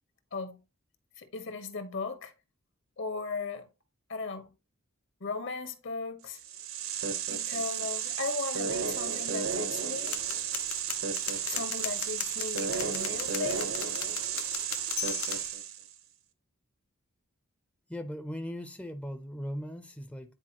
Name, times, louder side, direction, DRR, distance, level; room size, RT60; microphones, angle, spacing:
voice 1, 1.2-2.3 3.0-3.7 4.1-4.5 5.2-6.4 7.3-10.1 11.4-13.7, left 4 dB, 60° left, 1.2 m, -37 dB
sound 1, 6.3-15.9, right 7 dB, 85° right, 1.0 m, -33 dB
sound 2, 10.1-15.5, left 11 dB, 90° left, 0.8 m, -38 dB
voice 2, 17.9-20.3, equal, 5° left, 0.5 m, -38 dB
9.8 x 4.3 x 2.9 m
head